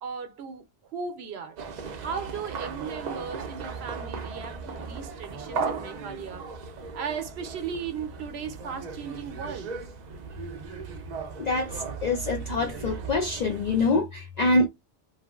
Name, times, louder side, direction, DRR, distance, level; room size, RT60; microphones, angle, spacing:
voice 1, 0.0-6.5 6.9-9.7, right 6 dB, 75° right, 0.9 m, -37 dB
sound 1, 1.6-13.8, right 5 dB, 50° right, 0.6 m, -37 dB
voice 2, 11.4-14.7, left 2 dB, 55° left, 0.5 m, -25 dB
2.9 x 2.4 x 2.3 m
omnidirectional pair, 1.1 m